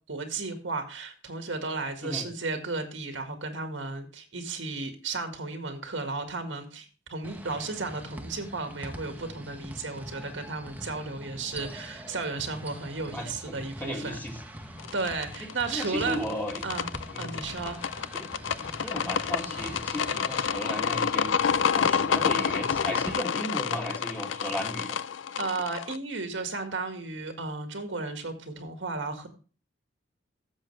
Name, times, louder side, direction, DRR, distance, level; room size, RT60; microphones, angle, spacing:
voice 1, 0.1-14.2 14.9-16.2 16.6-16.9 17.2-17.8 25.4-29.3, right 3 dB, 80° right, 6 dB, 1.8 m, -34 dB
sound 1, 7.2-23.1, right 1 dB, 10° right, 1.0 m, -44 dB
voice 2, 13.1-13.6 13.8-14.4 15.4-16.6 17.1-17.4 18.2-18.3 18.8-25.0, equal, 10° left, 0 dB, 2.0 m, -35 dB
sound 2, 14.8-26.0, left 7 dB, 85° left, 0.5 m, -29 dB
12.5 x 7.6 x 3.3 m, 0.36 s
head